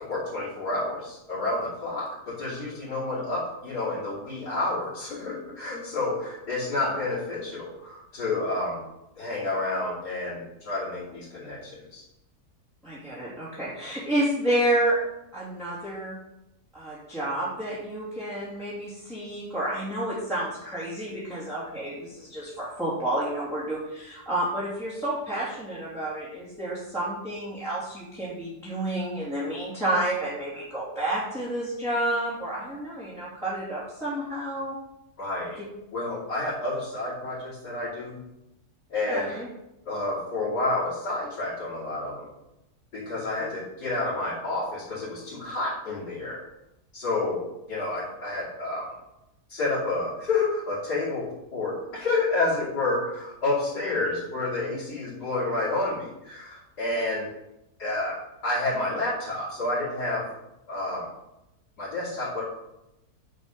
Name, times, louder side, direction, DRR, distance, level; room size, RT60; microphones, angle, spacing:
voice 1, 0.0-8.8 9.2-12.0 35.2-35.6 35.9-38.2 38.9-39.4 39.9-42.3 42.9-46.4 46.9-47.4 47.7-48.9 49.5-57.3 57.8-60.3 60.7-61.1 61.8-62.4, left 2 dB, 70° left, -11 dB, 3.5 m, -29 dB
voice 2, 12.8-15.0 15.3-16.2 16.7-34.8 35.6-35.7 39.1-39.5 43.4-43.5, right 1 dB, ahead, -11 dB, 2.6 m, -30 dB
9.2 x 5.3 x 5.2 m, 0.90 s
omnidirectional pair, 1.8 m